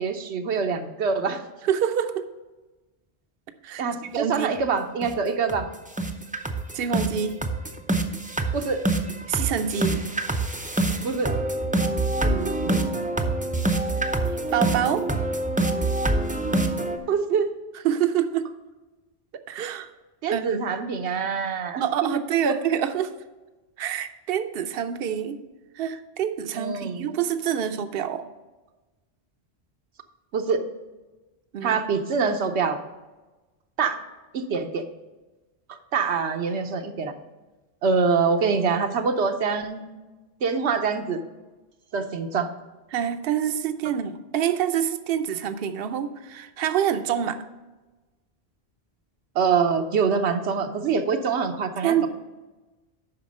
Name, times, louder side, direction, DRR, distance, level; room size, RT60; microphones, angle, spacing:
voice 1, 0.0-1.4 3.8-5.7 8.5-8.8 11.0-11.3 17.1-17.5 20.2-21.8 22.4-22.6 26.5-27.2 30.3-30.6 31.6-32.8 33.8-34.0 34.3-34.8 35.7-37.1 37.8-39.9 40.4-41.2 41.9-42.5 43.8-44.0 49.3-52.1, right 5 dB, 85° right, 6 dB, 1.1 m, -25 dB
voice 2, 1.6-2.3 3.6-3.8 4.1-4.5 6.7-7.4 9.3-10.0 12.2-13.1 14.5-15.1 17.8-18.5 19.5-19.9 20.3-20.9 21.8-23.1 23.8-25.4 25.7-28.2 31.5-31.8 42.9-47.4 51.8-52.1, right 9 dB, 70° right, 10 dB, 0.8 m, -26 dB
sound 1, 4.5-4.6 5.0-5.2 5.5-5.7 6.0-17.0, right 2 dB, 10° right, 0.4 m, -25 dB
8.5 x 5.9 x 5.3 m, 1.2 s
omnidirectional pair, 1.1 m